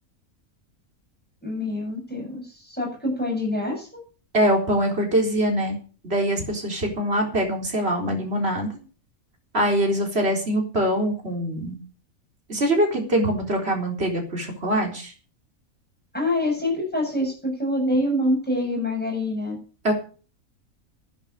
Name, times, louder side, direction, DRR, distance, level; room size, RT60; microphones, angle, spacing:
voice 1, 1.4-4.0 16.1-19.6, left 1 dB, 5° left, -1 dB, 7.9 m, -26 dB
voice 2, 4.3-5.8 6.0-8.7 9.5-11.8 12.5-15.1 19.8-19.9, right 1 dB, 45° right, 1 dB, 4.2 m, -23 dB
12.5 x 10.5 x 6.7 m, 0.39 s
omnidirectional pair, 1.5 m